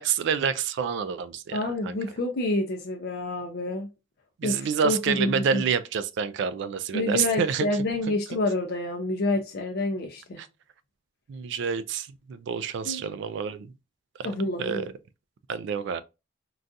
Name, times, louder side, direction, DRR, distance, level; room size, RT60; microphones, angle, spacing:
voice 1, 0.0-2.0 4.4-7.7 10.4-10.5 11.3-13.7 14.2-14.3 14.6-14.8 15.5-16.0, right 7 dB, 65° right, 0.3 m, -28 dB
voice 2, 1.5-3.9 4.4-5.7 6.9-10.4 12.8-13.0 14.2-14.9, left 2 dB, 55° left, 0.5 m, -28 dB
3.9 x 2.3 x 2.5 m
head